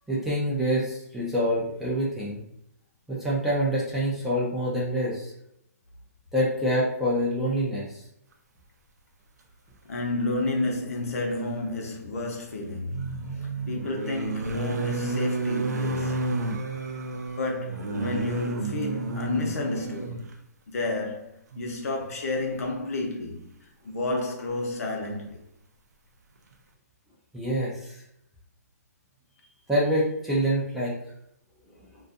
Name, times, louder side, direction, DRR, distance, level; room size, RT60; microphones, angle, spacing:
voice 1, 0.1-2.4 3.1-5.3 6.3-8.0 27.3-28.0 29.7-31.0, equal, 5° right, 0.3 m, -26 dB
voice 2, 9.9-13.3 13.7-16.3 17.4-20.3 20.7-23.4 23.8-25.4, left 2 dB, 60° left, 0.7 m, -31 dB
sound 1, 10.4-10.5 12.7-20.3 21.5-21.6 22.0-22.1, right 3 dB, 80° right, 0.4 m, -31 dB
2.5 x 2.3 x 2.5 m
hypercardioid pair, 160°, 9 cm